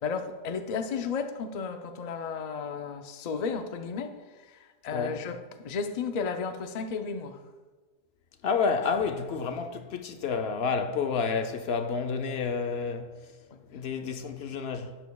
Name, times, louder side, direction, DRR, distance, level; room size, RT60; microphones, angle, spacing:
voice 1, 0.0-4.2 4.4-7.4 9.4-9.5 13.5-13.6, left 5 dB, 50° left, 0.6 m, -33 dB
voice 2, 8.4-13.1 13.7-15.0, left 5 dB, 70° left, 0.9 m, -29 dB
12.0 x 8.3 x 2.3 m
omnidirectional pair, 1.1 m